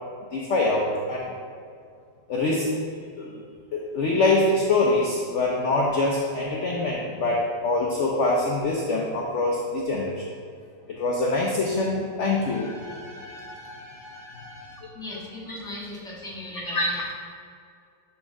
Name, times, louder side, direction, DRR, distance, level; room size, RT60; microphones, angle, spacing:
voice 1, 0.3-1.3 2.3-2.7 3.2-3.4 3.7-10.2 11.0-14.8 16.7-16.8, left 2 dB, 60° left, -2 dB, 0.7 m, -25 dB
voice 2, 14.9-17.1, left 1 dB, ahead, -6 dB, 1.4 m, -38 dB
10.5 x 4.4 x 3.6 m, 2.4 s
omnidirectional pair, 2.1 m